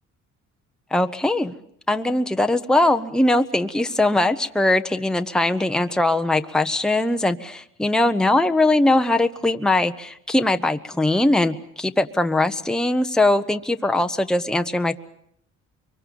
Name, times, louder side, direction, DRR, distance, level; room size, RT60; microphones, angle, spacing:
voice 1, 0.9-1.5 1.9-15.0, left 2 dB, ahead, 7 dB, 0.9 m, -21 dB
24.0 x 23.0 x 7.0 m, 0.71 s
cardioid pair, 90°, 30 cm